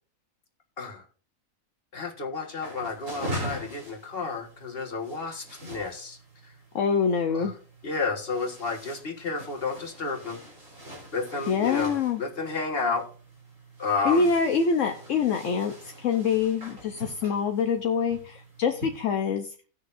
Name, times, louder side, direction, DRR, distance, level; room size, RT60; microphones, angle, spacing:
voice 1, 1.9-6.2 7.3-7.5 7.8-10.4 11.1-13.1 13.8-14.3, left 4 dB, 45° left, 2 dB, 1.7 m, -31 dB
sound 1, 2.6-19.0, equal, 65° right, 3.7 m, -42 dB
voice 2, 6.7-7.5 11.5-12.2 14.0-19.5, left 5 dB, 65° left, 6 dB, 1.1 m, -25 dB
18.5 x 6.4 x 2.6 m, 0.38 s
omnidirectional pair, 1.4 m